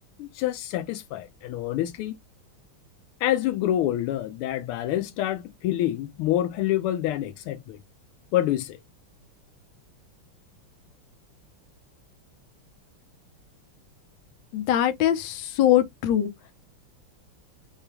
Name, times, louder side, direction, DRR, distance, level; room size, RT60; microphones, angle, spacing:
voice 1, 0.2-2.1 3.2-7.8 8.3-8.8, left 13 dB, 85° left, 1.5 m, -27 dB
voice 2, 14.5-16.3, left 11 dB, 70° left, 1.3 m, -22 dB
4.9 x 2.2 x 2.9 m
omnidirectional pair, 2.4 m